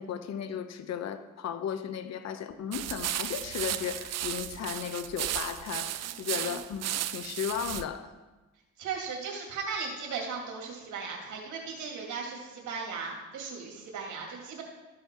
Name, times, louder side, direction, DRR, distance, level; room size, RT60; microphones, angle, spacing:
voice 1, 0.0-8.1, left 8 dB, 60° left, 10 dB, 0.8 m, -35 dB
sound 1, 2.7-7.8, right 12 dB, 60° right, 0.5 m, -34 dB
voice 2, 8.8-14.6, right 5 dB, 80° right, -1 dB, 2.2 m, -37 dB
13.0 x 5.7 x 4.5 m, 1.1 s
cardioid pair, 90°, 30 cm